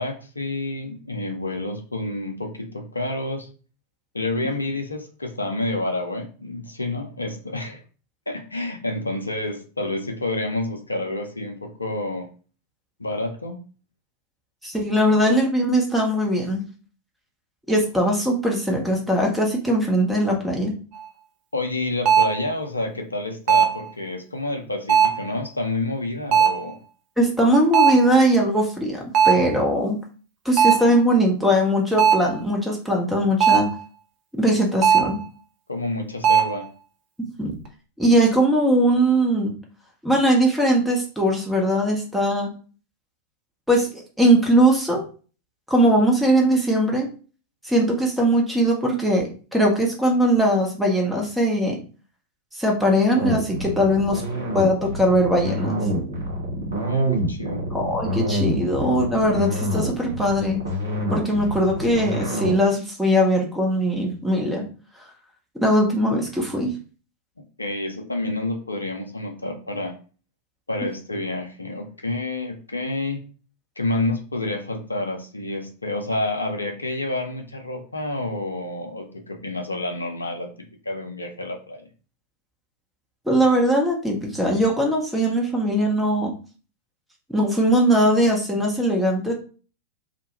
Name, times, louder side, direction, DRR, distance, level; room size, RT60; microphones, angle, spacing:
voice 1, 0.0-3.5 4.1-7.8 8.3-12.3 13.0-13.6 21.5-26.8 35.7-36.7 56.7-57.7 58.6-58.7 67.6-70.0 70.7-73.2 73.8-80.5 80.8-81.9, left 2 dB, 80° left, 3 dB, 0.4 m, -29 dB
voice 2, 14.6-16.6 17.7-20.8 27.2-30.0 30.4-33.7 34.4-35.2 37.2-37.5 38.0-39.5 40.0-42.5 43.7-45.0 45.7-47.1 47.6-51.8 52.6-54.2 54.5-55.8 57.7-60.6 61.1-64.7 65.6-66.7 83.3-86.3 87.3-89.3, equal, 5° right, -1 dB, 0.8 m, -20 dB
sound 1, 20.9-21.0 22.1-22.5 23.5-23.8 24.9-25.3 26.3-26.7 27.7-28.1 29.1-29.5 30.6-30.9 32.0-32.3 33.4-33.8 34.8-35.2 36.2-36.6, right 8 dB, 40° right, 0.5 m, -18 dB
sound 2, 53.1-62.6, right 1 dB, 75° right, 0.8 m, -26 dB
2.2 x 2.1 x 2.9 m, 0.38 s
figure-of-eight pair, 90°, 0 cm